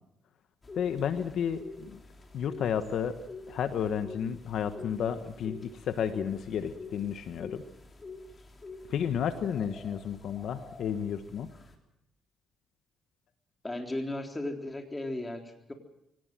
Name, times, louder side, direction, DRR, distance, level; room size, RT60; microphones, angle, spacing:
sound 1, 0.6-11.8, left 3 dB, 30° left, 3.6 m, -48 dB
voice 1, 0.7-2.0 2.3-3.2 3.5-7.6 8.9-11.5, left 8 dB, 70° left, 9 dB, 1.3 m, -32 dB
voice 2, 13.6-15.7, left 1 dB, 15° left, 4 dB, 3.7 m, -35 dB
24.0 x 18.5 x 7.7 m, 0.79 s
cardioid pair, 90°, 0 cm